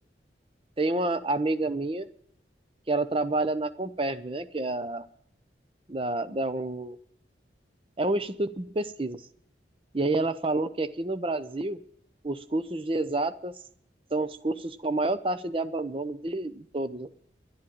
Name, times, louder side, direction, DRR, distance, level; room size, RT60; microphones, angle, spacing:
voice 1, 0.8-2.1 2.9-5.0 5.9-7.0 8.0-9.2 9.9-11.8 12.2-13.5 14.1-17.1, right 2 dB, 30° right, 12 dB, 0.7 m, -29 dB
11.5 x 10.5 x 8.9 m, 0.67 s
head